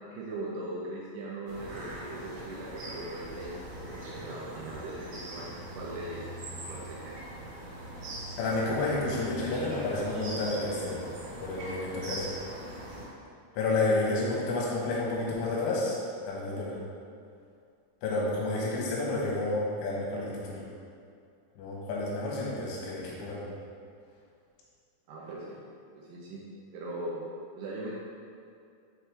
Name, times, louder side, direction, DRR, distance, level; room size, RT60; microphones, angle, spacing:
voice 1, 0.1-6.2 6.5-7.2 25.1-25.6 25.9-26.4 26.7-27.2 27.5-27.9, right 2 dB, 75° right, -5 dB, 2.6 m, -40 dB
sound 1, 1.5-13.1, right 1 dB, 60° right, 2.5 m, -42 dB
voice 2, 8.4-11.0 11.4-12.3 13.6-16.0 16.3-16.8 18.0-20.6 21.6-23.5, left 2 dB, 90° left, -5 dB, 3.7 m, -30 dB
8.5 x 3.2 x 3.4 m, 2.3 s
omnidirectional pair, 5.3 m